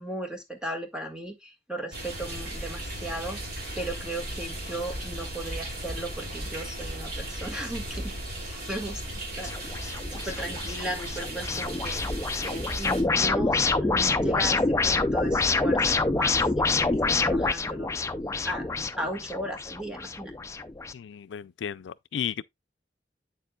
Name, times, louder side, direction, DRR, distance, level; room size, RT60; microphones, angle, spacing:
voice 1, 0.0-3.4 3.8-8.1 8.5-9.0 9.4-9.8 10.1-12.0 12.4-20.3, right 1 dB, 5° right, 1.6 m, -36 dB
sound 1, 1.9-13.0, right 1 dB, 60° right, 2.5 m, -36 dB
sound 2, 9.4-20.9, left 3 dB, 15° left, 0.4 m, -27 dB
voice 2, 20.9-22.4, left 8 dB, 90° left, 0.4 m, -34 dB
8.2 x 6.8 x 2.2 m
head